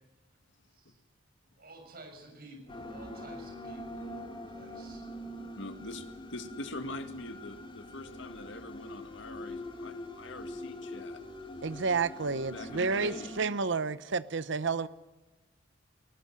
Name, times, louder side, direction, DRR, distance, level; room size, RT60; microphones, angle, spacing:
voice 1, 1.6-5.1, right 2 dB, 50° right, 3 dB, 6.4 m, -51 dB
sound 1, 2.7-13.5, left 1 dB, 25° left, 2.3 m, -44 dB
voice 2, 5.6-11.2 12.5-13.3, left 2 dB, 70° left, 8 dB, 2.2 m, -43 dB
voice 3, 11.6-14.9, right 4 dB, 65° right, 15 dB, 0.9 m, -30 dB
20.5 x 19.5 x 9.6 m, 1.1 s
head